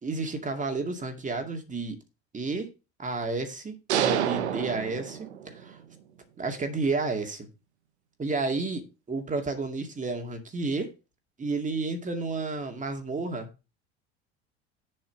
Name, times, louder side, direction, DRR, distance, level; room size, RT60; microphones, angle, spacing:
voice 1, 0.0-2.0 2.3-2.7 3.0-5.8 6.4-7.5 8.2-10.9 11.4-13.5, right 3 dB, 25° right, 2.3 m, -31 dB
sound 1, 3.9-5.7, right 10 dB, 85° right, 0.9 m, -28 dB
7.5 x 5.5 x 5.9 m
hypercardioid pair, 80°, 33 cm